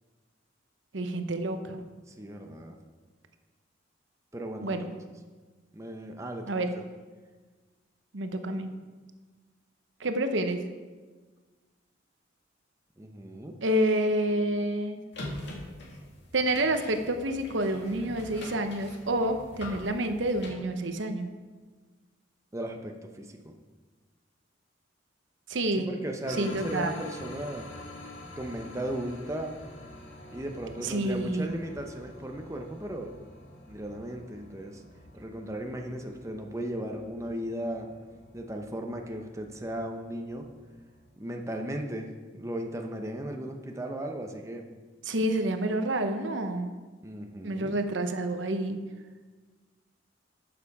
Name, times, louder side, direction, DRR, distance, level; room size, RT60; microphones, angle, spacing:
voice 1, 0.9-1.8 4.6-4.9 6.5-6.7 8.1-8.7 10.0-10.6 13.6-15.0 16.3-21.3 25.5-25.9 26.4-27.0 30.8-31.5 45.0-46.7 47.4-48.8, right 1 dB, 65° right, 7 dB, 0.8 m, -28 dB
voice 2, 2.1-2.8 4.3-4.9 5.7-6.5 13.0-13.6 22.5-23.5 25.8-27.7 28.4-29.6 30.3-33.1 33.7-34.8 35.1-37.9 38.3-40.5 41.2-42.1 42.3-44.7 47.0-47.8, right 1 dB, 15° right, 3 dB, 0.8 m, -36 dB
sound 1, 15.1-20.5, left 1 dB, 60° left, 2.1 m, -43 dB
sound 2, 26.2-41.1, left 1 dB, 80° left, 2.0 m, -48 dB
12.5 x 6.9 x 4.8 m, 1.4 s
head